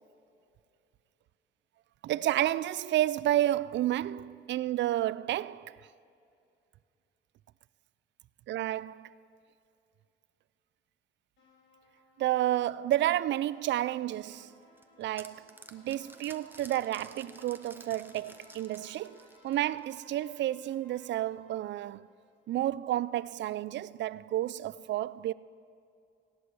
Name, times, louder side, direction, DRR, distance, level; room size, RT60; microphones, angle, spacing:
voice 1, 2.0-5.8 8.5-9.1 12.2-14.5 15.0-22.1 22.5-25.3, right 13 dB, 65° right, 0.4 m, -31 dB
sound 1, 11.4-22.6, left 2 dB, 80° left, 4.5 m, -61 dB
sound 2, 14.5-20.0, right 2 dB, 10° right, 0.9 m, -53 dB
16.5 x 11.0 x 6.1 m
cardioid pair, 90°, 20 cm